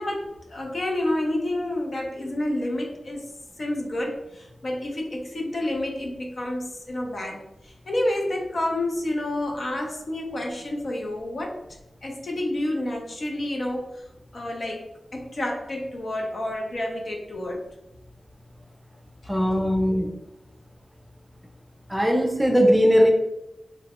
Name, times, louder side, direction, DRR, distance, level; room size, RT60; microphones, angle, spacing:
voice 1, 0.0-3.2 3.6-7.4 7.9-11.6 12.0-13.9 14.3-14.9 15.1-17.6, left 1 dB, 60° left, 0 dB, 0.6 m, -29 dB
voice 2, 19.3-20.1 21.9-23.1, equal, 5° right, 1 dB, 0.5 m, -19 dB
3.0 x 2.1 x 2.9 m, 0.88 s
wide cardioid pair, 75°, 0 cm